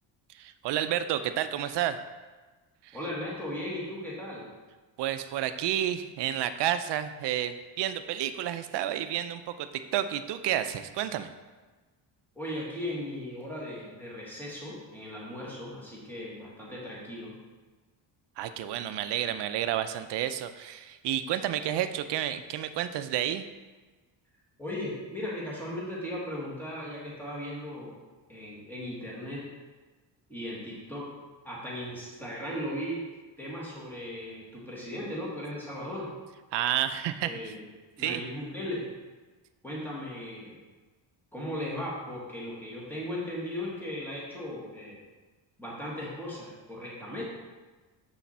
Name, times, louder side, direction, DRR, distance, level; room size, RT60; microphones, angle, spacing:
voice 1, 0.3-2.0 2.8-3.0 5.0-11.3 18.4-23.5 36.5-37.5 38.0-38.2, right 11 dB, 65° right, 11 dB, 0.6 m, -30 dB
voice 2, 2.9-4.4 12.3-17.3 24.6-27.9 28.3-29.4 30.3-31.0 31.4-33.0 33.4-36.1 37.2-37.6 38.0-38.8 39.6-40.6 41.3-45.0 45.6-47.2, left 1 dB, 5° left, -5 dB, 1.6 m, -37 dB
7.0 x 5.9 x 4.2 m, 1.3 s
cardioid pair, 165°, 45 cm